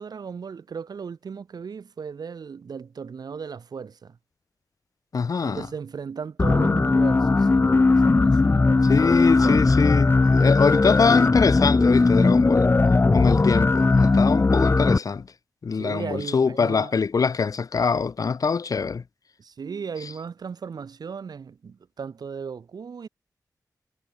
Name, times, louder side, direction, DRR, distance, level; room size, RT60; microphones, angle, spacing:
voice 1, 0.0-4.2 5.4-9.8 15.7-16.9 19.4-23.1, right 6 dB, 75° right, 7.7 m, -36 dB
voice 2, 5.1-5.7 8.9-12.7 13.1-15.3 15.6-19.0, left 5 dB, 60° left, 4.1 m, -23 dB
sound 1, 6.4-15.0, left 3 dB, 35° left, 2.5 m, -18 dB
wide cardioid pair, 140°, 7 cm